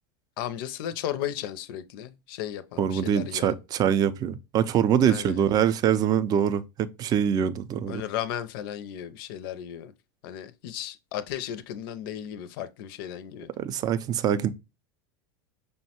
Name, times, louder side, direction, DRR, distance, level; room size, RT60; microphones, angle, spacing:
voice 1, 0.4-3.5 5.1-5.4 7.9-9.9 10.2-13.5, left 11 dB, 70° left, 0.5 m, -35 dB
voice 2, 2.8-8.0 13.6-14.5, right 9 dB, 30° right, 0.3 m, -24 dB
5.3 x 2.1 x 2.8 m
supercardioid pair, 120°, 12 cm